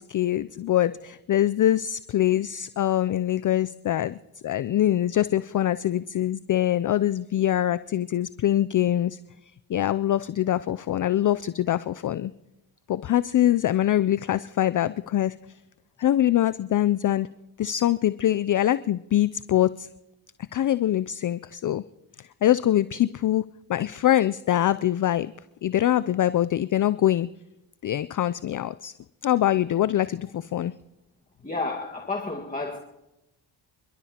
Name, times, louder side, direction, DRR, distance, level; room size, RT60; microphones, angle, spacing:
voice 1, 0.0-4.2 4.4-9.2 9.7-12.3 12.9-15.3 16.0-17.3 17.6-19.9 20.5-21.8 22.2-23.4 23.7-25.3 25.6-27.3 27.8-28.9 29.2-30.7, left 12 dB, 40° left, 16 dB, 0.4 m, -23 dB
voice 2, 31.4-32.8, left 3 dB, 15° left, 0 dB, 1.7 m, -31 dB
28.5 x 11.5 x 2.9 m, 0.94 s
cardioid pair, 55°, 49 cm